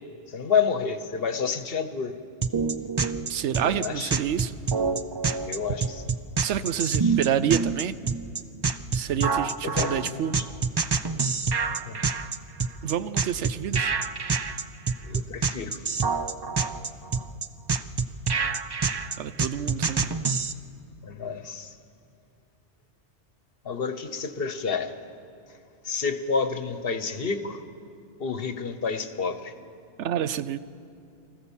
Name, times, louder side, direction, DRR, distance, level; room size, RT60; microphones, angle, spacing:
voice 1, 0.3-2.2 3.6-4.1 5.5-6.2 7.0-7.2 9.6-10.5 11.9-12.0 15.0-15.9 21.0-21.8 23.6-24.9 25.5-25.6 25.8-27.6 28.2-29.5, left 5 dB, 55° left, 10 dB, 1.2 m, -29 dB
sound 1, 2.4-20.5, right 5 dB, 45° right, 0.3 m, -26 dB
voice 2, 3.3-4.5 6.4-7.9 8.9-10.4 12.8-13.9 19.2-20.1 30.0-30.6, right 9 dB, 80° right, 14 dB, 0.9 m, -28 dB
23.5 x 15.5 x 7.2 m, 2.6 s
omnidirectional pair, 1.2 m